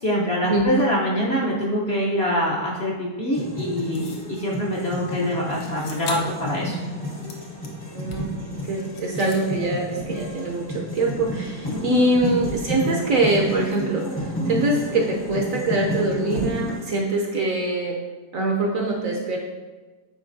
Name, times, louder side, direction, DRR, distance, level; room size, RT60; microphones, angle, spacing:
voice 1, 0.0-6.8 11.9-12.0, equal, 50° left, -4 dB, 0.8 m, -24 dB
sound 1, 3.3-16.8, equal, 25° left, 0.5 m, -31 dB
sound 2, 3.9-4.3 5.6-6.4 6.9-8.4 8.8-9.4, left 4 dB, 80° left, 1.4 m, -39 dB
voice 2, 7.9-18.0 18.3-19.4, right 2 dB, 65° right, 0 dB, 0.9 m, -24 dB
sound 3, 8.1-16.5, right 1 dB, 85° right, 3.0 m, -38 dB
9.1 x 4.4 x 2.6 m, 1.3 s
omnidirectional pair, 1.9 m